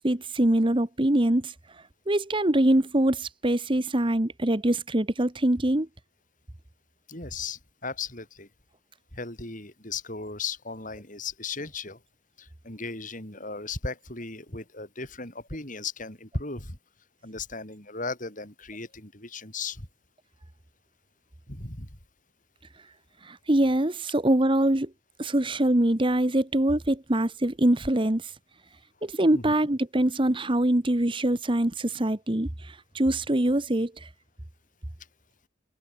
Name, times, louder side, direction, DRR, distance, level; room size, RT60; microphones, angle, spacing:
voice 1, 0.0-1.5 2.1-5.9 23.2-24.9 25.2-28.2 29.0-34.1, right 1 dB, 25° right, 1.1 m, -24 dB
voice 2, 7.1-8.5 9.1-12.0 12.4-16.8 17.2-19.9 21.5-21.9 29.3-29.5, left 4 dB, 40° left, 6.2 m, -36 dB
head